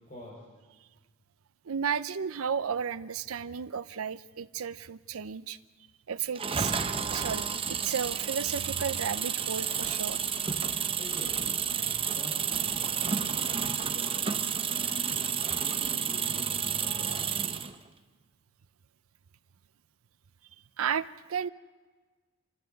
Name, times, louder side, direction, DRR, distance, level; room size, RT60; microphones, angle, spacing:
voice 1, 0.1-0.4 11.0-14.3 14.7-17.2, left 1 dB, 35° left, -3 dB, 4.8 m, -46 dB
voice 2, 1.7-5.6 6.1-6.7 7.1-10.2 20.8-21.5, right 7 dB, 80° right, 13 dB, 0.6 m, -33 dB
sound 1, 6.3-17.7, right 7 dB, 25° right, 0.8 m, -31 dB
26.5 x 14.0 x 7.8 m, 1.4 s
head